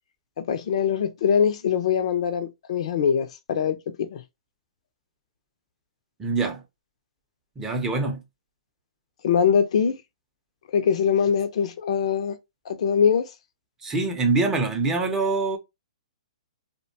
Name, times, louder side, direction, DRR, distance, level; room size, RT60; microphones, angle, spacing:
voice 1, 0.4-4.2 9.2-10.0 10.7-12.4 12.7-13.3, left 7 dB, 60° left, 0.5 m, -23 dB
voice 2, 6.2-6.6 7.6-8.2 13.8-15.6, right 3 dB, 15° right, 0.6 m, -24 dB
2.6 x 2.2 x 2.6 m
hypercardioid pair, 140°, 4 cm